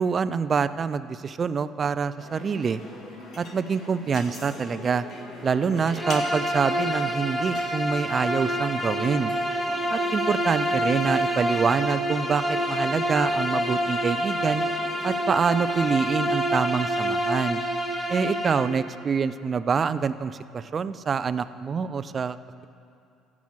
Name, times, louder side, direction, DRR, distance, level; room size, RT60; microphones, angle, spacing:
voice 1, 0.0-2.8 3.4-5.1 5.4-9.3 9.9-14.6 15.0-17.6 18.1-22.4, right 6 dB, 40° right, 14 dB, 0.5 m, -26 dB
sound 1, 2.2-15.9, left 2 dB, 60° left, 2.0 m, -42 dB
Bowed string instrument, 6.0-18.7, equal, 10° left, 1.8 m, -27 dB
15.0 x 6.1 x 7.8 m, 2.5 s
hypercardioid pair, 55°, 0 cm